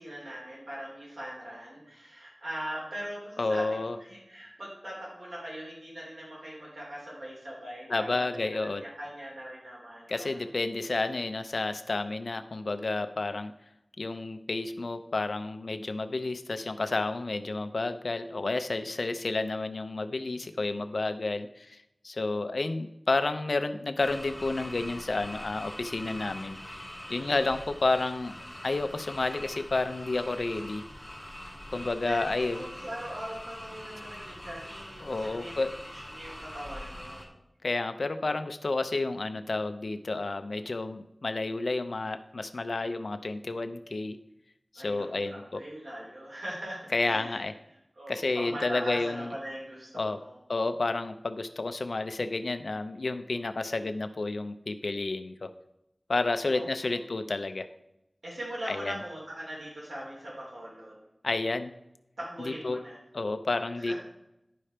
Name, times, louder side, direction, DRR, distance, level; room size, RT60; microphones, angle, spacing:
voice 1, 0.0-10.5 27.0-27.5 31.7-35.5 35.9-37.4 44.8-47.4 47.9-50.4 56.5-57.0 58.2-60.9 62.2-63.0 63.8-63.9, equal, 75° right, -5 dB, 3.3 m, -41 dB
voice 2, 3.4-4.0 7.9-8.8 10.1-13.5 14.0-28.3 28.6-30.8 31.7-32.6 35.0-35.7 37.6-44.2 44.7-45.6 46.9-47.5 48.1-49.3 49.9-50.2 50.5-55.5 56.1-57.7 58.7-59.0 61.2-61.7 62.5-62.8 63.1-63.9, left 3 dB, 90° left, 9 dB, 0.5 m, -31 dB
sound 1, 24.0-37.3, equal, 10° left, 2.3 m, -43 dB
11.0 x 5.0 x 4.3 m, 0.87 s
wide cardioid pair, 50°, 0 cm